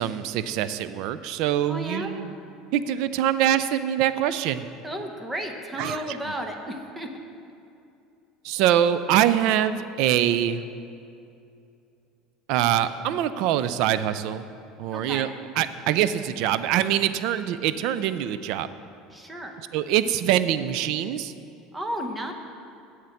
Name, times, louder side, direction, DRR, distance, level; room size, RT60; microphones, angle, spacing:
voice 1, 0.0-2.3 2.7-4.7 5.8-6.2 8.4-10.6 12.5-14.4 14.8-15.3 15.6-18.7 19.7-21.3, right 11 dB, 65° right, 13 dB, 0.4 m, -24 dB
voice 2, 1.7-2.1 4.8-7.1 14.9-15.3 19.1-19.5 21.7-22.3, equal, 10° right, 4 dB, 0.9 m, -33 dB
8.0 x 7.6 x 7.1 m, 2.6 s
cardioid pair, 145°, 0 cm